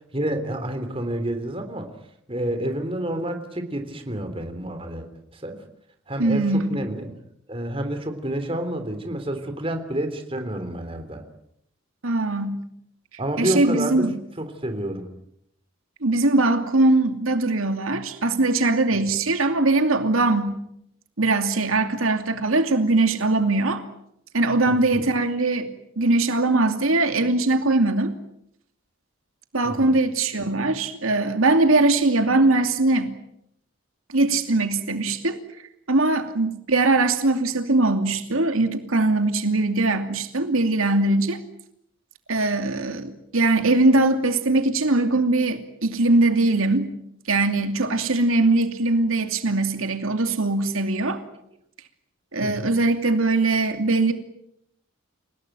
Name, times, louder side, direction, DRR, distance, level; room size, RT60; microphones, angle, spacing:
voice 1, 0.1-1.9 2.3-5.1 5.3-5.6 6.1-7.1 7.5-11.2 13.2-14.0 14.4-15.1 24.7-25.0 29.6-30.0 52.4-52.7, right 1 dB, 25° right, 7 dB, 3.3 m, -29 dB
voice 2, 6.2-6.8 12.0-12.6 13.4-14.1 16.0-20.6 21.2-23.8 24.3-25.7 26.0-28.2 29.5-33.1 34.1-35.4 35.9-41.4 42.3-46.9 47.3-51.2 52.3-54.1, right 2 dB, 90° right, 7 dB, 2.7 m, -21 dB
29.5 x 18.0 x 9.2 m, 0.75 s
head